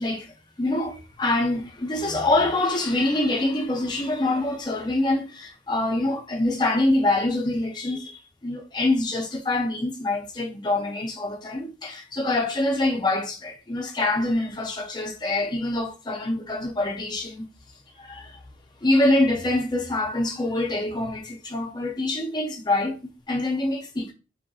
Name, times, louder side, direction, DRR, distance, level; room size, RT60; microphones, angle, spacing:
voice 1, 0.0-17.5 18.0-18.4 18.8-24.1, left 2 dB, 25° left, 0.4 m, -25 dB
2.7 x 2.4 x 2.3 m
head